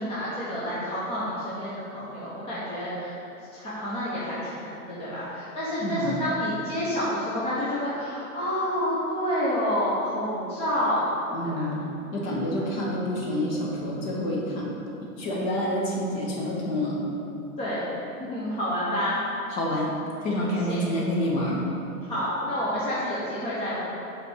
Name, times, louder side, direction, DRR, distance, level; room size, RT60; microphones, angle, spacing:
voice 1, 0.0-3.2 3.5-11.1 11.4-11.7 17.6-17.9 18.2-19.2 20.7-20.9 22.1-23.7, equal, 15° left, -9 dB, 0.9 m, -29 dB
voice 2, 5.8-6.3 11.3-11.7 12.1-14.7 15.2-17.0 19.5-19.9 20.2-21.6, left 1 dB, 40° left, -3 dB, 1.7 m, -28 dB
6.6 x 4.2 x 6.2 m, 2.8 s
hypercardioid pair, 150°, 43 cm